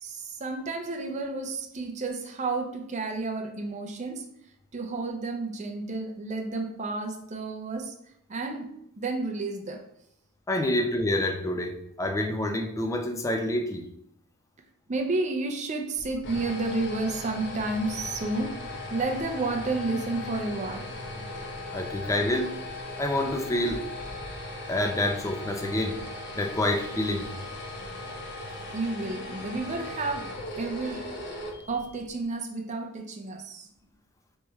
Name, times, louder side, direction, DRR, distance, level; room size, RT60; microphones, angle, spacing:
voice 1, 0.0-4.2 4.7-7.9 8.3-8.7 9.0-9.8 14.9-18.5 18.9-21.3 22.0-22.1 28.7-30.3 30.6-31.1 31.7-33.7, right 3 dB, 35° right, 3 dB, 0.5 m, -31 dB
voice 2, 10.5-13.9 21.7-22.5 23.0-23.9 24.7-26.0 26.3-27.3, left 1 dB, 15° left, 4 dB, 0.4 m, -27 dB
sound 1, 16.0-32.2, left 2 dB, 50° left, 0.8 m, -38 dB
3.2 x 3.1 x 3.4 m, 0.75 s
head